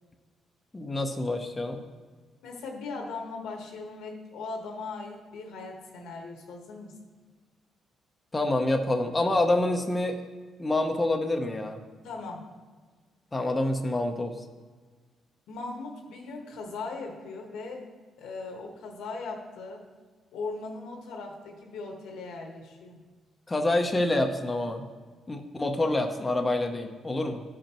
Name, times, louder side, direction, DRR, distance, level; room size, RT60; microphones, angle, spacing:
voice 1, 0.7-1.8 8.3-10.2 10.6-11.8 13.3-14.5 23.5-24.8 25.3-27.4, left 2 dB, 20° left, 4 dB, 0.6 m, -27 dB
voice 2, 2.4-6.9 12.0-12.4 15.5-17.9 18.2-19.9 20.3-23.0, left 3 dB, 85° left, 2 dB, 1.2 m, -39 dB
12.0 x 5.2 x 2.9 m, 1.5 s
cardioid pair, 90°, 0 cm